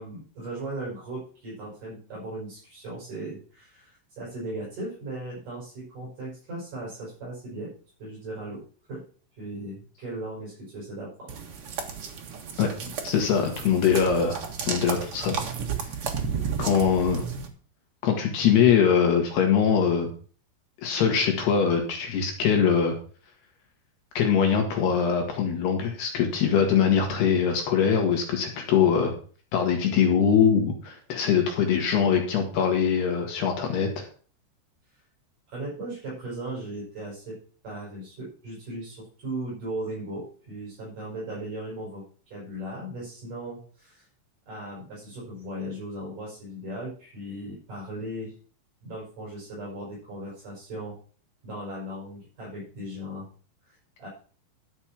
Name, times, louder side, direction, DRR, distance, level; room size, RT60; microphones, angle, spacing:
voice 1, 0.0-7.7 8.0-8.6 8.9-9.0 9.4-11.4 12.8-12.9 16.2-16.5 35.5-37.4 37.6-42.0 42.3-44.1 44.5-48.3 48.8-51.0 51.4-53.3 53.7-54.1, right 1 dB, 45° right, -6 dB, 7.3 m, -37 dB
sound 1, 11.3-17.5, right 6 dB, 90° right, 1.2 m, -33 dB
voice 2, 13.0-14.4 14.7-15.4 16.6-17.2 18.0-20.1 20.8-23.0 24.2-29.1 29.5-34.0, left 7 dB, 65° left, 3 dB, 3.6 m, -22 dB
12.0 x 6.7 x 6.2 m, 0.41 s
omnidirectional pair, 5.3 m